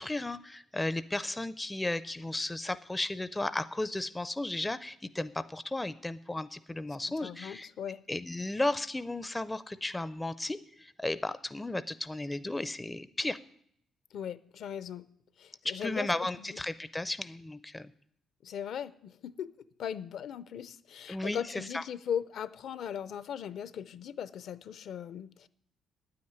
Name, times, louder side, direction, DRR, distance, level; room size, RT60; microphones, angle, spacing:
voice 1, 0.0-7.7 8.1-13.4 15.6-17.9 21.1-21.8, left 2 dB, 10° left, 13 dB, 0.4 m, -34 dB
voice 2, 7.2-8.0 14.1-15.0 15.4-16.1 16.5-16.6 18.4-19.5 19.8-25.5, left 8 dB, 60° left, 16 dB, 0.6 m, -38 dB
9.5 x 8.6 x 9.5 m, 0.66 s
cardioid pair, 150°, 0 cm